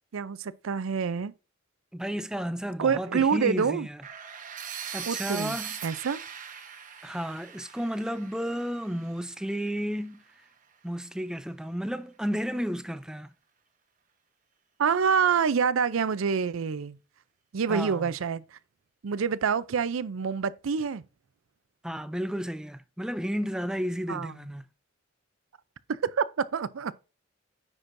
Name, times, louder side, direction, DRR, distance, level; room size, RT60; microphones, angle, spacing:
voice 1, 0.1-1.3 2.8-3.9 5.1-5.6 5.8-6.2 14.8-17.0 17.5-18.6 19.0-21.0 24.1-24.4 25.9-26.9, right 6 dB, 90° right, 0.5 m, -27 dB
voice 2, 1.9-4.0 4.9-5.7 7.0-10.2 10.8-13.3 17.7-18.1 21.8-24.6, equal, 5° right, 0.4 m, -32 dB
sound 1, 4.0-9.9, right 8 dB, 40° right, 1.0 m, -40 dB
9.8 x 6.0 x 2.6 m
head